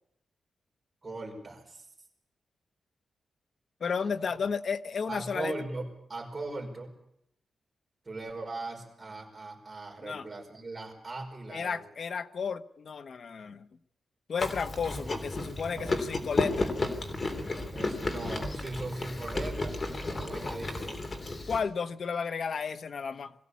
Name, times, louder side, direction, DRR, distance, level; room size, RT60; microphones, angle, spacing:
voice 1, 1.0-1.9 4.0-4.1 5.1-6.9 8.0-11.8 15.7-16.0 17.4-19.8 20.1-21.1, right 2 dB, 25° right, 2 dB, 5.3 m, -39 dB
voice 2, 3.8-5.5 10.0-10.3 11.5-13.7 14.3-16.7 21.5-23.3, left 6 dB, 55° left, 11 dB, 0.9 m, -33 dB
Chewing mastication, 14.4-21.6, left 2 dB, 30° left, 3.2 m, -33 dB
22.5 x 16.0 x 8.4 m, 0.78 s
wide cardioid pair, 145°, 0 cm